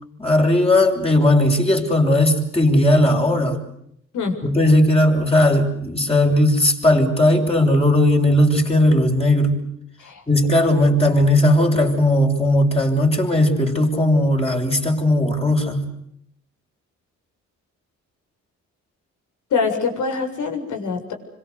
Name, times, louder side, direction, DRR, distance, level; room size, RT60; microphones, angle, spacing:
voice 1, 0.2-3.6 4.4-9.7 10.3-15.9, left 1 dB, 20° left, 1 dB, 7.0 m, -17 dB
voice 2, 19.5-21.1, left 5 dB, 75° left, 4 dB, 7.3 m, -24 dB
27.0 x 26.0 x 8.3 m, 0.72 s
cardioid pair, 90°, 30 cm